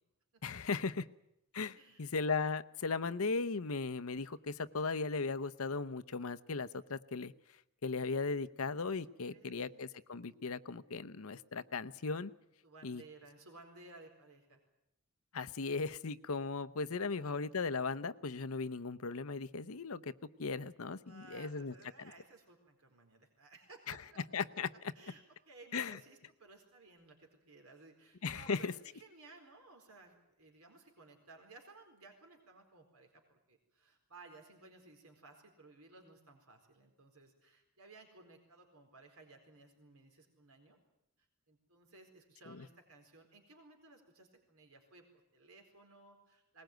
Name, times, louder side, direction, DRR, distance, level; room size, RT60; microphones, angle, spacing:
voice 1, 0.4-1.1 1.5-7.3 7.8-12.3 12.8-13.0 15.3-20.1 20.4-21.7 23.9-24.0 24.3-24.7 25.7-26.0 28.2-28.7 42.5-42.7, left 4 dB, 75° left, 12 dB, 0.8 m, -37 dB
voice 2, 1.7-2.1 9.0-9.8 12.6-14.6 17.0-17.5 21.0-24.2 24.9-40.8 41.5-46.6, right 3 dB, 85° right, 3 dB, 4.4 m, -58 dB
21.0 x 19.5 x 9.2 m, 0.83 s
head